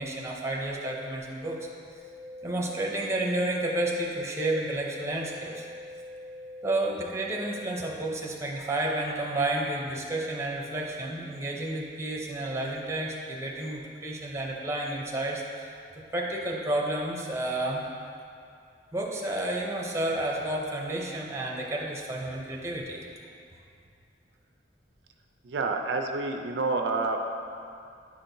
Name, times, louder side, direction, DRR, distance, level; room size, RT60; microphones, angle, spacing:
voice 1, 0.0-1.7 2.4-5.7 6.6-15.7 16.1-17.8 18.9-23.2, right 1 dB, 15° right, -1 dB, 0.6 m, -31 dB
sound 1, 2.0-8.0, left 1 dB, 75° left, 0.7 m, -43 dB
voice 2, 25.4-27.3, right 3 dB, 70° right, 4 dB, 0.4 m, -28 dB
9.3 x 4.4 x 2.7 m, 2.4 s
head